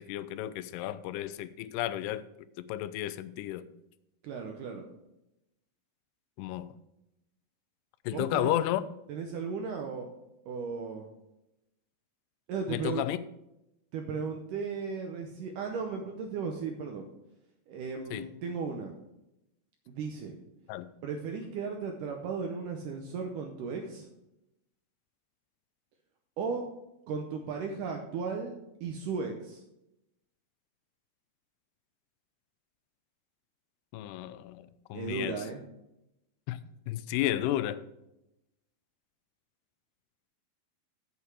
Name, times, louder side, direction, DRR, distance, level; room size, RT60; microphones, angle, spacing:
voice 1, 0.0-2.2 2.6-3.7 6.4-6.7 8.1-8.8 12.7-13.2 18.1-18.3 20.7-20.9 33.9-35.4 36.5-36.6 36.9-37.9, left 13 dB, 90° left, 2.6 m, -32 dB
voice 2, 4.2-4.9 8.1-8.7 9.1-10.1 10.5-11.1 12.5-13.0 13.9-17.1 17.7-18.9 19.9-20.4 21.0-24.1 26.4-26.6 27.1-28.5 28.8-29.6 34.9-35.6, right 5 dB, 80° right, 1.9 m, -35 dB
8.3 x 7.9 x 4.8 m
omnidirectional pair, 4.6 m